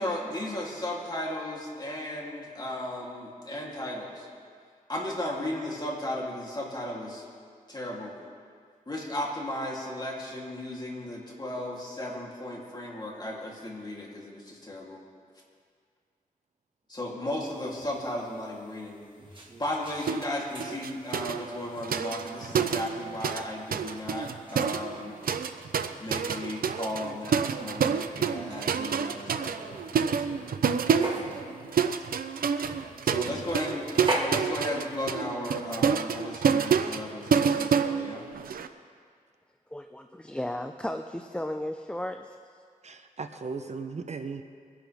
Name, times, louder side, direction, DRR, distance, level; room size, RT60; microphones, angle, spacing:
voice 1, 0.0-4.3 4.9-7.2 7.7-8.1 8.9-15.0 16.9-19.0 19.6-25.2 26.0-29.8 30.2-30.5 31.1-31.6 33.0-38.3, left 1 dB, 30° left, -3 dB, 3.1 m, -35 dB
sound 1, 17.4-35.1, right 1 dB, 35° right, 1.9 m, -42 dB
sound 2, 20.1-20.3 20.6-23.4 23.7-38.7, right 6 dB, 85° right, 0.6 m, -28 dB
voice 2, 39.7-42.4, left 1 dB, 5° left, 6 dB, 0.5 m, -34 dB
voice 3, 42.8-44.4, right 4 dB, 50° right, 8 dB, 0.7 m, -37 dB
23.0 x 11.0 x 3.5 m, 2.1 s
wide cardioid pair, 85°, 15 cm